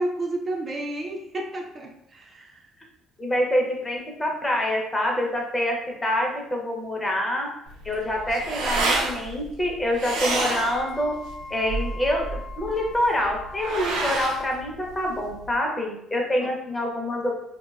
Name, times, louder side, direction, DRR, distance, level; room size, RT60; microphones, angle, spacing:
voice 1, 0.0-2.6 16.4-16.5, right 1 dB, 30° right, 1 dB, 0.3 m, -31 dB
voice 2, 3.2-7.5 7.8-11.2 11.5-17.3, left 1 dB, 15° left, 0 dB, 0.5 m, -26 dB
sound 1, 7.7-15.6, right 2 dB, 90° right, 0.5 m, -29 dB
Wind instrument woodwind instrument, 10.0-14.6, left 5 dB, 50° left, 0.7 m, -42 dB
2.5 x 2.2 x 2.3 m, 0.77 s
cardioid pair, 100°, 0 cm